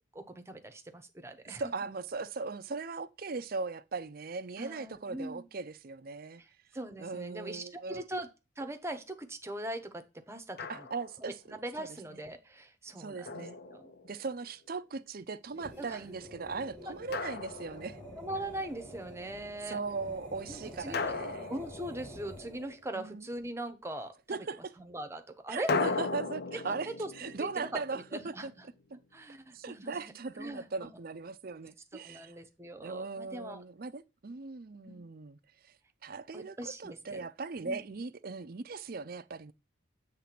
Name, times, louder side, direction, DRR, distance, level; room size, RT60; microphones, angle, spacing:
voice 1, 0.1-1.6 4.6-5.5 6.4-8.3 8.6-10.9 11.5-13.9 15.8-16.0 16.9-17.0 18.2-19.8 20.5-21.1 21.5-24.4 24.8-26.0 26.5-28.7 29.1-30.1 30.4-30.7 32.0-33.6 34.8-35.0 36.3-37.3 37.6-37.8, right 1 dB, 15° right, 0.8 m, -41 dB
voice 2, 1.5-6.4 7.0-8.0 10.7-11.4 11.8-12.2 13.0-13.6 14.0-18.0 19.7-21.5 22.9-23.3 24.3-24.7 25.5-28.5 28.9-29.0 29.5-32.3 32.8-35.4 36.0-39.5, right 4 dB, 50° right, 0.5 m, -39 dB
Drum, 10.6-11.3 13.3-14.3 17.1-18.3 20.9-22.6 25.7-28.7, left 4 dB, 50° left, 0.6 m, -37 dB
sound 1, 15.5-22.9, equal, 20° left, 2.3 m, -48 dB
8.5 x 3.3 x 5.9 m
head